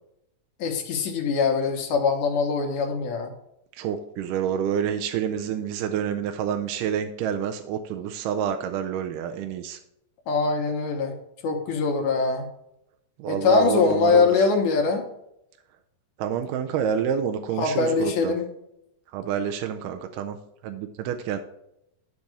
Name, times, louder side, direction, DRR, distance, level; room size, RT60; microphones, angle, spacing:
voice 1, 0.6-3.3 10.3-11.2 11.4-12.5 13.3-15.1 17.6-18.5, left 5 dB, 70° left, 2 dB, 2.2 m, -23 dB
voice 2, 3.8-9.8 13.2-14.5 16.2-18.4 19.1-20.4 20.6-21.4, right 8 dB, 80° right, 6 dB, 2.0 m, -28 dB
12.0 x 4.1 x 4.9 m, 0.81 s
omnidirectional pair, 4.1 m